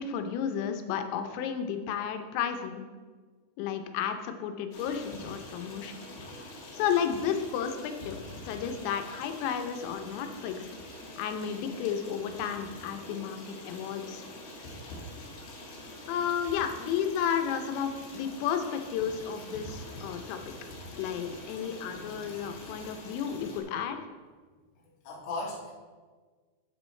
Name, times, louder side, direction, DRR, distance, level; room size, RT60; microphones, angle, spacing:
voice 1, 0.0-2.8 3.6-6.0 6.7-8.2 8.5-10.7 11.2-14.2 16.1-20.5 21.0-24.1, left 8 dB, 90° left, 7 dB, 3.0 m, -32 dB
Stream, 4.7-23.6, left 1 dB, 70° left, 3.1 m, -45 dB
voice 2, 25.0-25.7, left 2 dB, 50° left, -4 dB, 1.7 m, -37 dB
9.4 x 8.4 x 3.2 m, 1.5 s
omnidirectional pair, 5.0 m